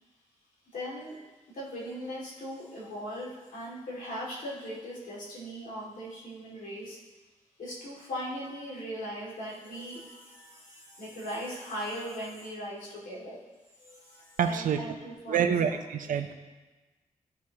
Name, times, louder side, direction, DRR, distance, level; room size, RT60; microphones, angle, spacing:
voice 1, 0.7-1.2 1.5-7.0 7.6-13.4 13.8-15.4 16.0-16.1, equal, 75° left, -5 dB, 2.2 m, -39 dB
voice 2, 14.4-14.8 15.3-16.3, right 7 dB, 85° right, 7 dB, 0.6 m, -27 dB
14.0 x 4.6 x 2.9 m, 1.2 s
wide cardioid pair, 165°, 13 cm